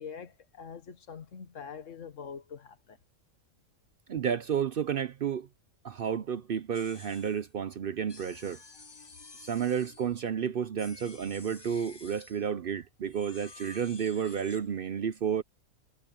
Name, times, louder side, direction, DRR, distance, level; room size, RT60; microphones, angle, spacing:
voice 1, 0.0-3.0, left 6 dB, 70° left, 1.6 m, -44 dB
voice 2, 4.1-5.5 5.8-8.6 9.4-15.4, right 8 dB, 55° right, 0.7 m, -31 dB
sound 1, 6.7-7.5 8.1-10.2 10.8-12.5 13.1-14.7, left 3 dB, 25° left, 0.7 m, -51 dB
omnidirectional pair, 1.4 m